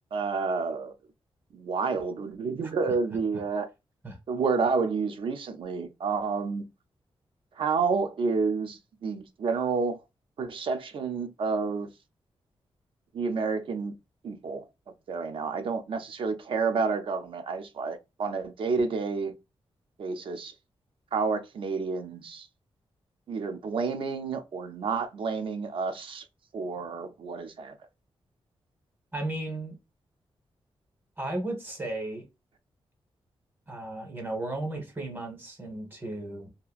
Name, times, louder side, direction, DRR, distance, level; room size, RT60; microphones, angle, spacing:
voice 1, 0.1-0.9 1.5-3.7 4.3-6.6 7.6-10.0 10.4-11.9 13.1-13.9 14.2-14.6 15.1-19.3 20.0-20.5 21.1-22.5 23.3-26.3 26.5-27.7, right 4 dB, 60° right, 0.4 m, -29 dB
voice 2, 29.1-29.8 31.2-32.2 33.7-36.5, right 2 dB, 20° right, 0.9 m, -34 dB
2.8 x 2.4 x 2.3 m
wide cardioid pair, 155°, 10 cm